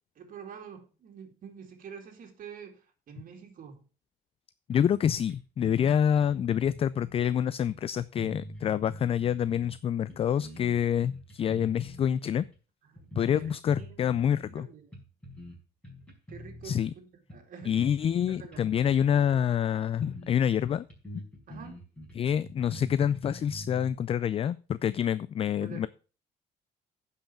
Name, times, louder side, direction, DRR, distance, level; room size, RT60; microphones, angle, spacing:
voice 1, 0.2-2.8 3.1-3.8 12.8-14.1 14.5-14.9 16.3-17.0 17.3-17.7 18.3-18.6 19.1-19.4 21.5-21.8 25.6-25.8, right 7 dB, 55° right, 3 dB, 2.6 m, -47 dB
voice 2, 4.7-12.4 13.2-14.7 16.6-16.9 17.7-20.8 22.1-25.9, left 9 dB, 35° left, 17 dB, 0.3 m, -27 dB
sound 1, 4.7-5.0 5.3-5.4 5.6-7.2 7.7-9.8 10.1-12.0 12.4-12.6 13.0-14.6 14.9-15.6 15.8-16.9 17.3-19.4 19.7-19.8 20.0-20.3 20.6-23.9, equal, 5° left, 4.9 m, -45 dB
10.0 x 5.7 x 5.8 m, 0.36 s
cardioid pair, 110°, 17 cm